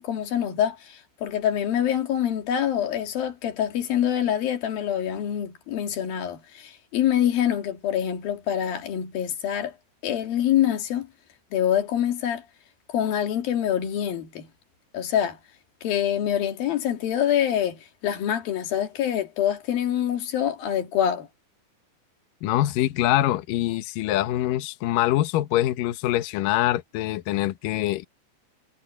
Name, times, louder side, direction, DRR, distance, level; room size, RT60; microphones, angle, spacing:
voice 1, 0.0-9.7 10.0-11.1 11.5-12.4 12.9-14.5 14.9-15.4 15.8-21.3, left 10 dB, 60° left, 3.6 m, -25 dB
voice 2, 22.4-28.0, left 14 dB, 75° left, 2.0 m, -24 dB
omnidirectional pair, 5.3 m